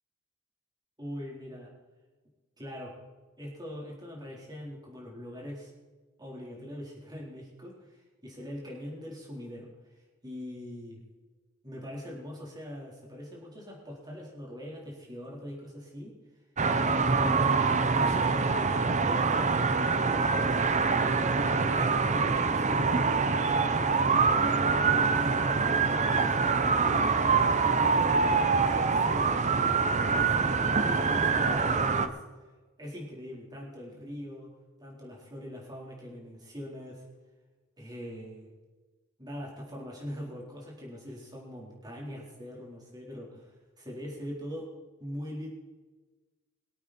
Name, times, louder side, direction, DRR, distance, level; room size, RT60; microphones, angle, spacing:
voice 1, 1.0-1.7 2.6-3.0 3.4-5.7 6.2-11.0 11.6-16.2 17.1-21.0 21.6-23.0 23.3-25.2 25.9-29.4 29.9-32.2 32.8-34.5 34.8-37.0 37.8-38.5 39.2-44.7 45.0-45.5, equal, 20° right, -3 dB, 4.2 m, -42 dB
sound 1, 16.6-32.1, right 4 dB, 35° right, 0.8 m, -25 dB
23.5 x 8.7 x 4.4 m, 1.3 s
head